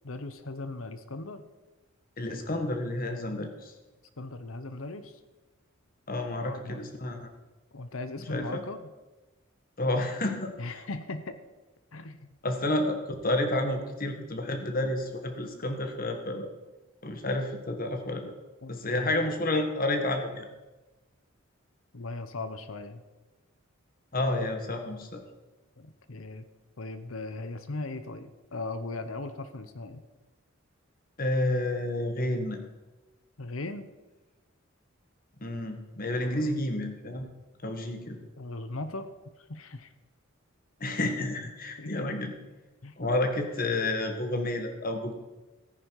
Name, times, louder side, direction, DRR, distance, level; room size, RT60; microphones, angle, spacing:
voice 1, 0.0-1.4 4.2-5.2 6.4-6.8 7.7-8.9 10.6-11.4 11.9-12.4 18.6-19.1 21.9-23.0 25.8-26.5 26.8-30.0 33.4-33.9 36.2-36.3 38.4-39.1 39.4-39.9 41.8-42.1 42.8-42.9, left 2 dB, 80° left, 11 dB, 1.0 m, -38 dB
voice 2, 2.2-3.7 6.1-7.3 8.3-8.6 9.8-10.5 12.4-16.5 17.0-18.3 18.7-20.5 24.1-25.2 31.2-32.6 35.4-37.3 37.6-38.2 40.8-42.3 43.0-45.1, left 1 dB, 45° left, 5 dB, 1.7 m, -30 dB
14.0 x 10.0 x 4.8 m, 1.1 s
head